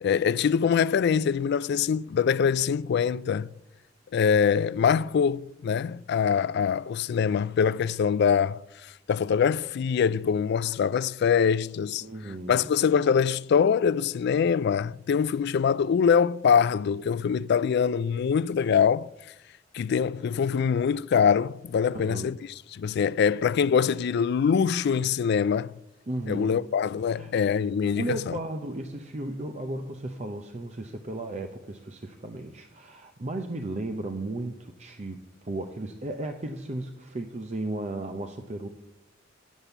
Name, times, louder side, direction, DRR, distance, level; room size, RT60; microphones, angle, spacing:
voice 1, 0.0-3.5 4.1-8.6 9.1-12.0 12.5-19.1 19.7-22.4 22.7-25.7 26.3-28.4, left 7 dB, 60° left, 0.3 m, -24 dB
voice 2, 12.0-12.7 21.9-22.3 26.1-26.6 27.1-27.3 28.0-38.7, right 2 dB, 35° right, 0.7 m, -35 dB
10.0 x 7.3 x 7.9 m
head